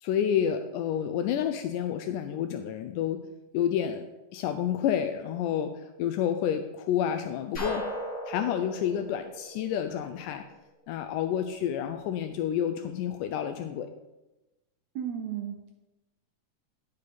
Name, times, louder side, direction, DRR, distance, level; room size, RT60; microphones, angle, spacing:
voice 1, 0.0-3.2 3.5-4.1 4.3-5.7 6.0-7.8 8.3-10.4 10.9-13.9, left 9 dB, 85° left, 7 dB, 2.1 m, -29 dB
sound 1, 7.5-10.3, equal, 40° left, 2.4 m, -37 dB
voice 2, 14.9-15.7, right 9 dB, 75° right, 3 dB, 1.7 m, -34 dB
10.5 x 6.5 x 4.2 m, 1.0 s
omnidirectional pair, 3.7 m